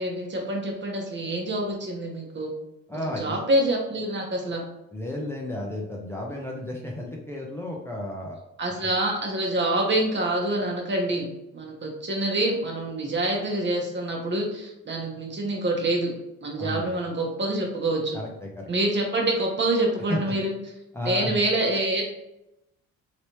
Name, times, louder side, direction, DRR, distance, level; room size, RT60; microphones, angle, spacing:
voice 1, 0.0-2.5 3.0-4.6 8.6-11.3 11.5-16.1 16.4-18.2 18.7-20.5 21.0-22.0, right 1 dB, 40° right, 0 dB, 1.0 m, -26 dB
voice 2, 2.9-3.4 4.9-8.4 16.6-16.9 18.1-18.7 20.1-20.4 20.9-21.4, left 1 dB, 10° left, -2 dB, 0.6 m, -33 dB
3.2 x 2.9 x 3.0 m, 0.88 s
cardioid pair, 90°, 30 cm